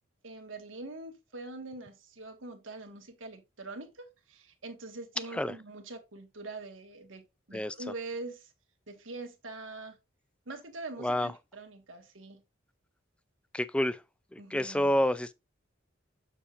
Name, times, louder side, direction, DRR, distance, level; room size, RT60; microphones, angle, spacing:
voice 1, 0.2-7.2 7.5-8.5 8.9-10.0 10.4-12.4 14.4-14.9, right 2 dB, 80° right, 1.6 m, -43 dB
voice 2, 13.5-14.0 14.5-15.3, left 1 dB, 5° left, 0.3 m, -28 dB
7.2 x 6.9 x 2.5 m
head